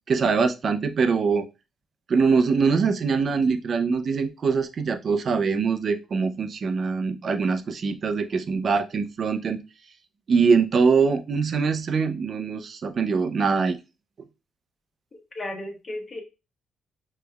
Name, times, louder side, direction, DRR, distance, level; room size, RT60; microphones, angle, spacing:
voice 1, 0.1-1.5 2.1-9.6 10.3-13.8, right 5 dB, 50° right, 9 dB, 0.5 m, -23 dB
voice 2, 15.1-16.2, left 1 dB, 35° left, 2 dB, 1.2 m, -35 dB
5.2 x 3.2 x 2.3 m, 0.27 s
cardioid pair, 90°, 0 cm